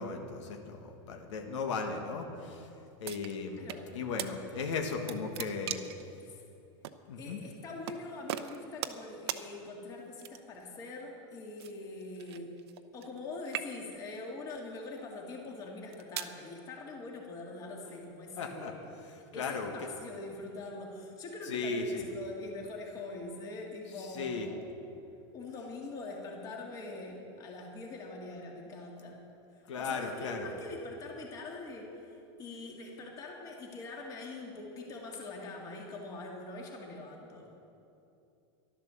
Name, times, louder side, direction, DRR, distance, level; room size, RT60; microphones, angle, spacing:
voice 1, 0.0-2.7 3.0-3.7 3.9-5.8 7.1-7.4 18.4-18.7 19.1-19.7 21.5-22.0 24.0-24.5 29.7-30.5, left 4 dB, 90° left, 3 dB, 1.7 m, -36 dB
sound 1, 3.0-3.8 4.2-4.3 4.7-6.0 6.8-7.0 7.9-8.0 8.3-9.0 9.3-9.4 10.2-10.6 11.6-13.2 13.4-14.0 14.7-15.0 15.7-16.4, right 12 dB, 60° right, 0.7 m, -39 dB
voice 2, 3.6-3.9 6.2-6.4 7.2-12.5 12.9-18.9 19.3-24.6 25.3-29.2 29.6-37.5, left 2 dB, 25° left, 0 dB, 2.0 m, -43 dB
12.0 x 12.0 x 6.9 m, 2.7 s
supercardioid pair, 170°, 15 cm